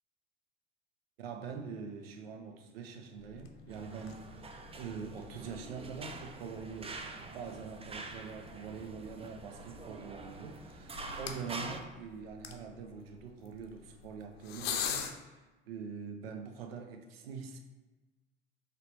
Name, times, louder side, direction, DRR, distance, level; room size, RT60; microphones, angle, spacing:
voice 1, 1.2-17.6, right 5 dB, 85° right, 5 dB, 0.6 m, -44 dB
sound 1, 3.1-15.1, left 8 dB, 85° left, 0.5 m, -45 dB
sound 2, 3.7-11.8, right 3 dB, 20° right, 0.6 m, -46 dB
4.8 x 3.2 x 3.4 m, 1.2 s
hypercardioid pair, 65°, 29 cm